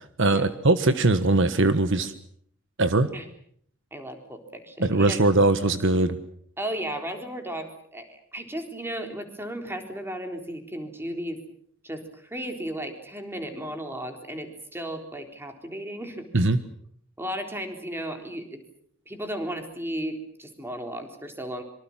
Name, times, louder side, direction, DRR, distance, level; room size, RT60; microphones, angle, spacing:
voice 1, 0.2-2.1 2.8-3.1 4.8-6.2 16.3-16.6, right 2 dB, 65° right, 11 dB, 1.4 m, -21 dB
voice 2, 3.9-5.2 6.6-11.4 11.8-16.3 17.2-18.6 19.1-21.6, right 1 dB, 10° right, 5 dB, 3.9 m, -35 dB
25.5 x 24.5 x 7.4 m, 0.65 s
head